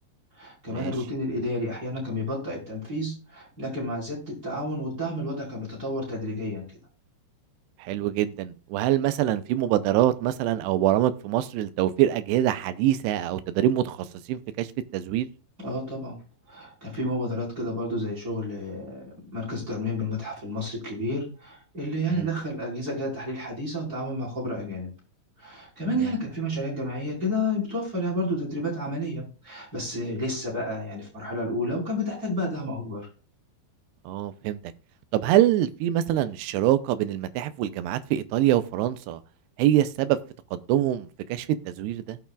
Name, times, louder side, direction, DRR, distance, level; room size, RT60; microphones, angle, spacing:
voice 1, 0.4-6.6 15.6-16.2 16.5-24.9 25.4-33.1, left 1 dB, 20° right, -2 dB, 5.0 m, -31 dB
voice 2, 7.8-14.0 14.3-14.7 14.9-15.3 22.1-22.3 34.1-34.6 35.1-39.2 39.6-40.2 40.5-42.2, right 12 dB, 80° right, 12 dB, 2.6 m, -24 dB
17.5 x 6.9 x 2.4 m, 0.35 s
omnidirectional pair, 5.2 m